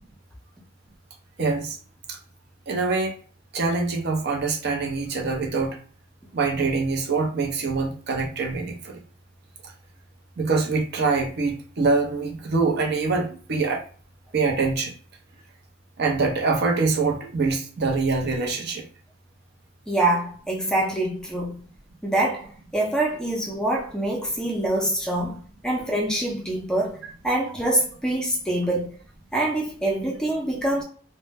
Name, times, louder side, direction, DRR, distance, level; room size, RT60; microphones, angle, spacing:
voice 1, 1.4-1.8 2.1-2.2 2.7-3.1 3.5-5.8 6.3-9.0 10.4-13.8 14.3-14.9 16.0-18.8, right 4 dB, 55° right, 0.6 m, -24 dB
voice 2, 19.9-21.6 22.0-22.5 22.7-27.0 27.2-28.9 29.3-30.8, right 1 dB, 5° left, 0.5 m, -25 dB
2.1 x 2.0 x 3.3 m
head